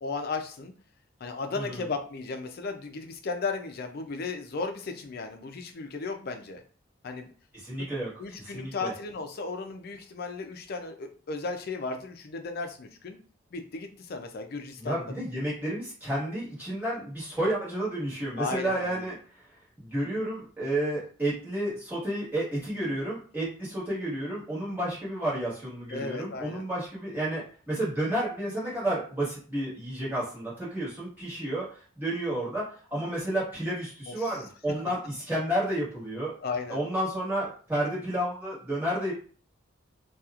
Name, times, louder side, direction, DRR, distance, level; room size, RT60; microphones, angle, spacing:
voice 1, 0.0-0.7 1.2-6.6 7.0-7.3 8.2-13.2 13.5-15.1 18.4-19.1 25.9-26.6 34.1-34.4 34.7-34.8 36.4-36.8, left 4 dB, 50° left, 5 dB, 0.4 m, -35 dB
voice 2, 7.5-8.1 8.4-8.9 14.8-19.1 19.8-31.7 32.0-36.3 36.7-39.1, right 1 dB, 10° right, -8 dB, 1.4 m, -31 dB
2.8 x 2.3 x 2.4 m, 0.40 s
head